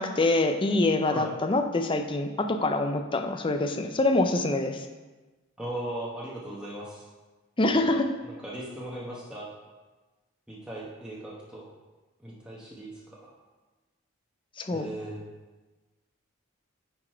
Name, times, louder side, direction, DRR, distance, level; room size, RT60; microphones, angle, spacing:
voice 1, 0.0-4.8 7.6-8.1 14.6-14.9, left 2 dB, 25° left, 6 dB, 0.5 m, -25 dB
voice 2, 5.6-7.1 7.7-8.0 8.2-9.5 10.5-11.7 12.2-13.3 14.7-15.2, right 1 dB, 5° right, -7 dB, 1.0 m, -38 dB
9.3 x 4.0 x 4.4 m, 1.2 s
head